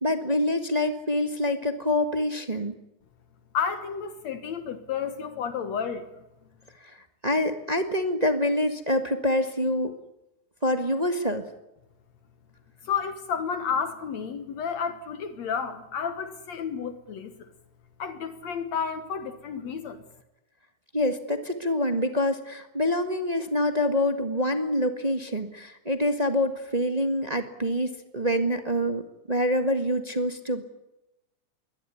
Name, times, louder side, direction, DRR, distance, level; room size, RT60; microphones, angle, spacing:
voice 1, 0.0-2.8 7.2-9.9 10.6-11.5 20.9-30.7, left 1 dB, 25° right, 0.9 m, -26 dB
voice 2, 3.5-6.1 12.8-17.5 18.0-20.0, left 6 dB, 65° left, 2.5 m, -31 dB
22.5 x 19.0 x 9.6 m
omnidirectional pair, 3.5 m